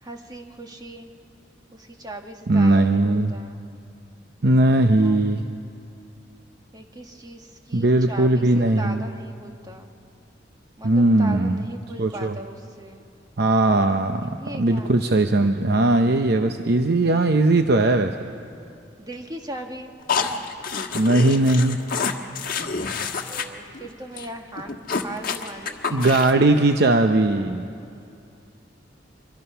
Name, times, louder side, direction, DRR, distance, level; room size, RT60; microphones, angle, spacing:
voice 1, 0.0-1.1 1.7-3.6 5.0-5.2 5.5-5.6 6.7-9.9 10.8-13.0 14.2-14.9 19.0-19.9 23.3-26.7 27.9-28.2, right 1 dB, 20° right, 3 dB, 1.5 m, -39 dB
voice 2, 2.5-3.3 4.4-5.5 7.7-9.1 10.8-11.6 12.0-12.4 13.4-18.2 20.9-21.8 25.9-27.7, right 2 dB, 60° right, 6 dB, 0.7 m, -19 dB
sound 1, 20.1-23.5 23.7-23.9 24.2-24.3 24.6-26.5, left 5 dB, 55° left, 1.4 m, -28 dB
25.0 x 23.5 x 5.7 m, 2.6 s
head